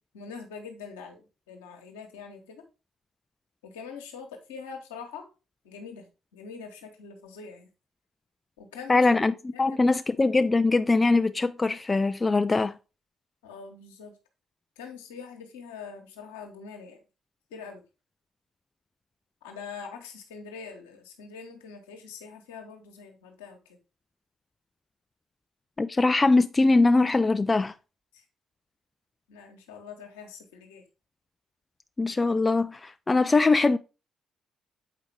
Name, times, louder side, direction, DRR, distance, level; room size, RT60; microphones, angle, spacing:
voice 1, 0.0-2.6 3.6-5.2 5.6-6.1 6.3-7.7 8.6-9.1 9.5-9.9 10.1-10.2 13.4-14.1 14.8-17.0 17.5-17.8 19.4-23.8 28.1-28.2 29.3-30.8, left 5 dB, 75° left, 1.2 m, -43 dB
voice 2, 8.9-12.8 25.8-27.7 32.0-33.8, left 3 dB, 25° left, 0.4 m, -22 dB
7.6 x 4.8 x 3.5 m
figure-of-eight pair, 45°, 0 cm